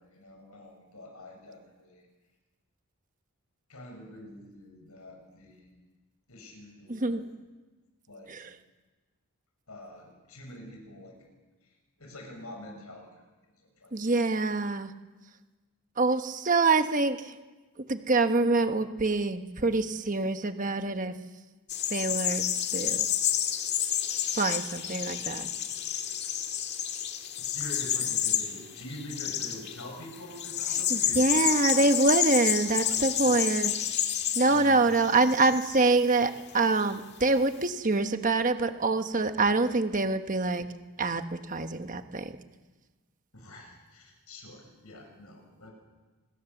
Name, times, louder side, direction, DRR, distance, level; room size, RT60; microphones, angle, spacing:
voice 1, 0.0-2.1 3.7-5.7 6.3-7.3 8.1-8.3 9.7-11.2 11.6-13.1 13.5-14.2 25.2-25.3 27.4-31.9 32.9-33.5 34.5-35.2 43.3-45.7, left 1 dB, 90° left, 2 dB, 7.3 m, -46 dB
voice 2, 6.9-7.2 8.3-8.4 13.9-14.9 16.0-17.2 17.9-21.1 21.9-23.1 24.4-25.5 30.9-33.7 34.3-40.6 41.0-41.2 41.5-42.3, right 3 dB, 35° right, 8 dB, 1.2 m, -25 dB
sound 1, 21.7-36.0 36.4-36.9, left 10 dB, 50° left, 1.8 m, -30 dB
26.0 x 21.0 x 7.2 m, 1.2 s
head